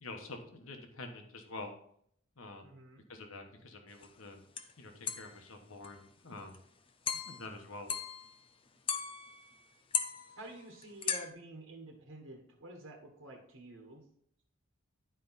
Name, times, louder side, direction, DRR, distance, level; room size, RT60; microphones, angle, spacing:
voice 1, 0.0-1.8 2.4-2.7 3.1-4.4 4.8-6.6 7.2-7.9, left 2 dB, 80° left, 5 dB, 1.2 m, -47 dB
voice 2, 2.6-3.0 10.4-14.0, right 2 dB, 65° right, 1 dB, 1.4 m, -49 dB
sound 1, 4.0-4.1 4.6-4.7 5.1-5.4 5.8-6.0 6.4-6.6 7.1-7.5 7.9-8.4 8.9-9.6 9.9-11.3, left 7 dB, 25° left, 0.5 m, -37 dB
10.5 x 4.6 x 4.1 m, 0.65 s
head